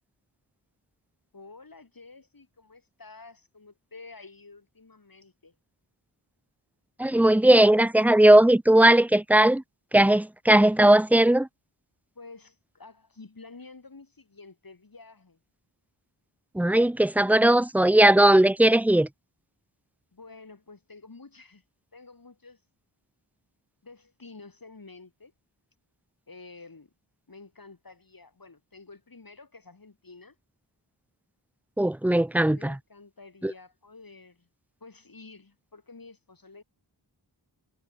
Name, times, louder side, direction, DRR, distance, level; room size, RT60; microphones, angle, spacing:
voice 1, 1.3-5.6 12.2-15.4 20.1-21.6 21.9-22.6 23.8-25.3 26.3-26.9 27.3-30.4 32.5-34.5 34.8-36.6, left 3 dB, 50° left, 3.5 m, -49 dB
voice 2, 7.0-9.6 9.9-11.5 16.5-19.1 31.8-32.8 33.4-33.5, right 1 dB, 5° right, 0.3 m, -18 dB
wide cardioid pair, 65°, 44 cm